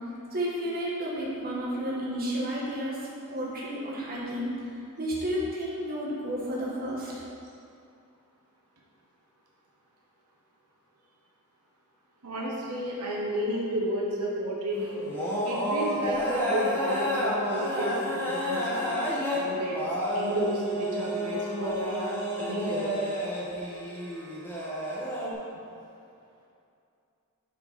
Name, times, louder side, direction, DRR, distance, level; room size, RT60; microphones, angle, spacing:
voice 1, 0.3-3.0 3.3-7.1, equal, 45° right, -5 dB, 1.5 m, -32 dB
voice 2, 12.2-15.0 15.4-18.9 19.3-19.8 20.1-22.9, equal, 85° right, -3 dB, 1.2 m, -32 dB
sound 1, 14.7-25.3, equal, 10° left, 1.4 m, -30 dB
7.6 x 5.8 x 4.2 m, 2.5 s
head